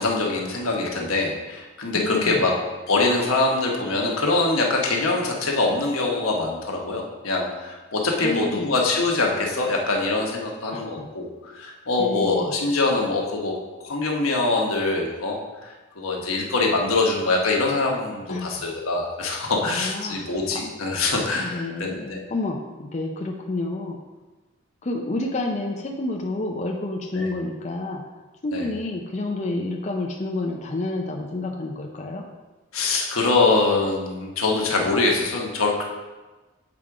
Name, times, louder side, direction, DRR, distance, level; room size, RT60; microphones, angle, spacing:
voice 1, 0.0-2.5 2.9-13.5 13.8-22.0 27.1-27.3 28.5-28.7 32.7-35.8, left 3 dB, 90° left, -1 dB, 1.2 m, -24 dB
voice 2, 1.9-2.4 8.2-8.7 10.7-11.1 12.0-12.6 18.3-18.6 19.6-20.2 21.4-24.0 24.8-28.0 28.4-32.2, left 2 dB, 35° left, 1 dB, 0.5 m, -29 dB
7.5 x 3.6 x 4.8 m, 1.2 s
head